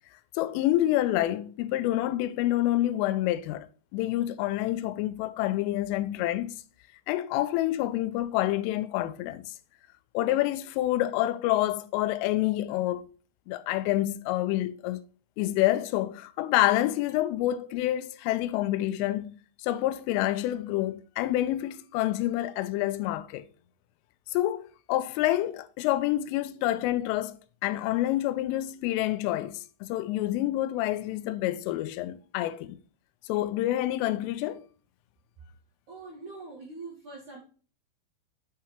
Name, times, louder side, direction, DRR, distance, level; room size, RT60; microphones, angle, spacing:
voice 1, 0.4-3.7 3.9-6.5 7.1-9.4 10.1-13.0 13.5-15.0 15.4-19.3 19.6-23.5 24.3-27.4 27.6-32.8 33.3-34.6, left 14 dB, 90° left, 3.1 m, -27 dB
voice 2, 35.9-37.4, right 3 dB, 65° right, 1.9 m, -43 dB
7.6 x 4.9 x 4.4 m
omnidirectional pair, 5.7 m